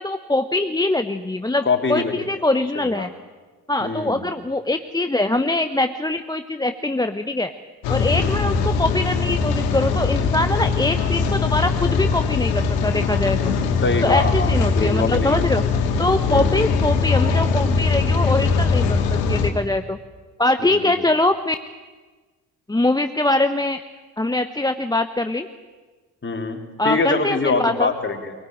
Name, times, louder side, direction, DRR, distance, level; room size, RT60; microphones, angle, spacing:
voice 1, 0.0-3.1 3.7-7.5 7.9-13.5 14.0-15.6 16.0-20.0 20.4-21.6 22.7-23.8 24.2-25.5 26.8-27.9, left 2 dB, 10° left, 8 dB, 1.1 m, -23 dB
voice 2, 1.6-2.3 2.8-3.1 3.8-4.3 8.1-8.4 13.8-15.4 16.3-16.7 20.6-20.9 26.2-28.3, left 4 dB, 25° left, 3 dB, 3.9 m, -24 dB
Rain, 7.8-19.5, left 5 dB, 65° left, 2.5 m, -21 dB
23.5 x 18.5 x 9.2 m, 1.3 s
figure-of-eight pair, 45°, 48 cm